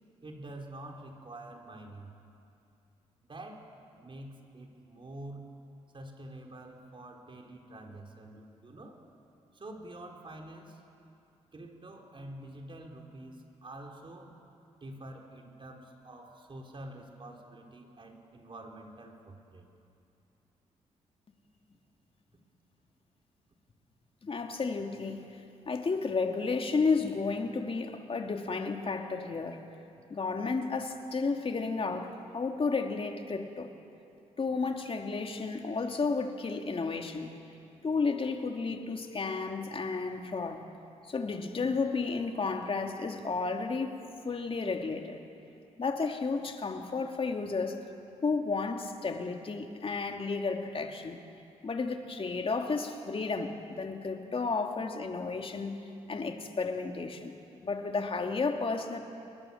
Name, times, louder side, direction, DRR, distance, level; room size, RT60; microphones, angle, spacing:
voice 1, 0.2-2.1 3.2-3.7 4.0-5.5 5.9-9.0 9.5-10.8 11.5-14.4 14.8-19.7, right 1 dB, 40° right, 2 dB, 4.4 m, -47 dB
voice 2, 24.2-25.4 25.7-29.6 30.1-33.7 34.4-37.4 37.8-40.6 41.1-45.2 45.8-47.8 48.2-51.2 51.6-55.8 56.1-57.3 57.6-59.0, left 4 dB, 45° left, 4 dB, 2.6 m, -32 dB
29.5 x 21.0 x 7.3 m, 2.6 s
cardioid pair, 60°, 13 cm